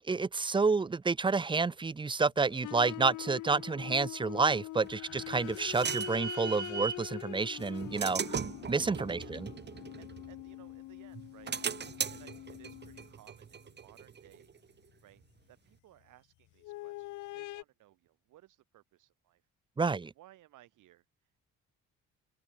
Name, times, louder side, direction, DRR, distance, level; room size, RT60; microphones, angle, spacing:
voice 1, 0.1-8.4 8.7-9.5 19.8-20.1, right 4 dB, 15° right, 0.5 m, -29 dB
sound 1, 2.5-13.2 14.9-15.0 16.6-17.6, left 18 dB, 75° left, 0.5 m, -44 dB
sound 2, 4.7-8.4, left 8 dB, 45° left, 2.0 m, -57 dB
sound 3, 4.9-7.1 7.6-10.7 11.1-14.6, right 6 dB, 35° right, 1.2 m, -38 dB
voice 2, 9.1-11.8 12.1-15.2 15.5-19.5 19.9-21.4, right 15 dB, 85° right, 5.1 m, -61 dB
open air
cardioid pair, 90°, 30 cm